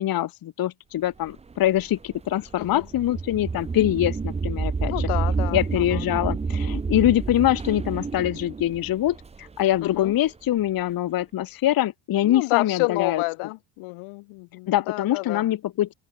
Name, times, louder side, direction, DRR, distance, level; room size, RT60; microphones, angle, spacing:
voice 1, 0.0-5.1 5.5-13.2 14.7-15.9, left 13 dB, 45° left, 1.1 m, -24 dB
sound 1, 1.3-10.3, right 4 dB, 15° right, 0.7 m, -29 dB
voice 2, 4.9-5.6 9.8-10.1 12.2-15.4, left 26 dB, 80° left, 0.9 m, -29 dB
open air
cardioid pair, 130°, 49 cm